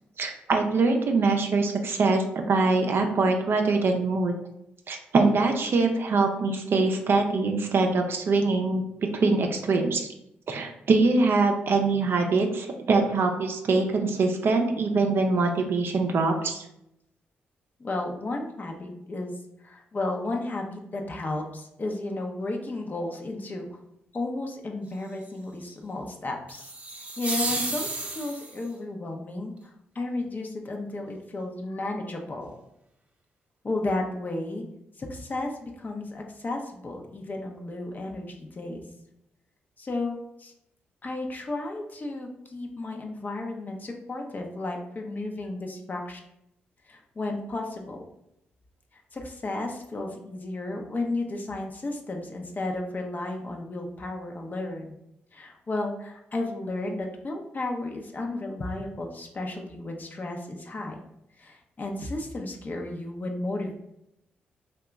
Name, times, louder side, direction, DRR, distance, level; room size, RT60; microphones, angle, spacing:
voice 1, 0.2-4.3 4.9-8.9 9.1-10.1 10.5-16.6, right 3 dB, 55° right, 3 dB, 0.4 m, -23 dB
voice 2, 17.8-23.8 24.1-26.7 27.0-27.9 28.1-29.5 29.9-32.6 33.6-34.6 35.0-38.8 39.8-40.5 41.0-46.2 46.9-48.0 49.1-55.0 55.3-61.0 61.4-63.7, left 2 dB, 40° left, 2 dB, 0.6 m, -33 dB
sound 1, 26.5-28.7, right 2 dB, 30° right, 0.8 m, -32 dB
2.8 x 2.2 x 3.5 m, 0.81 s
hypercardioid pair, 45°, 5 cm